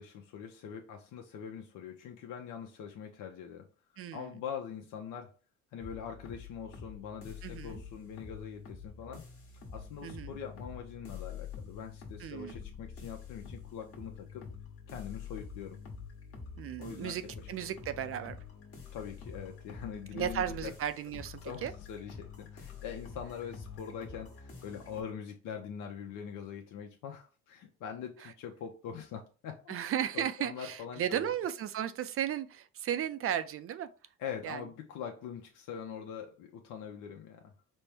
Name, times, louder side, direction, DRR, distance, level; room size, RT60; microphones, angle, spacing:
voice 1, 0.0-3.7 4.1-5.3 5.7-9.2 9.7-14.5 14.9-15.8 16.8-17.5 18.9-20.7 21.4-29.8 30.1-31.3 34.2-37.5, left 7 dB, 65° left, 0.7 m, -43 dB
voice 2, 4.0-4.3 7.4-7.8 10.0-10.4 12.2-12.5 16.6-17.2 17.5-18.4 20.1-21.7 29.7-33.9 34.4-34.6, right 10 dB, 40° right, 0.4 m, -35 dB
sound 1, 5.8-25.0, left 6 dB, 40° left, 1.3 m, -47 dB
4.2 x 2.1 x 3.3 m
cardioid pair, 100°, 34 cm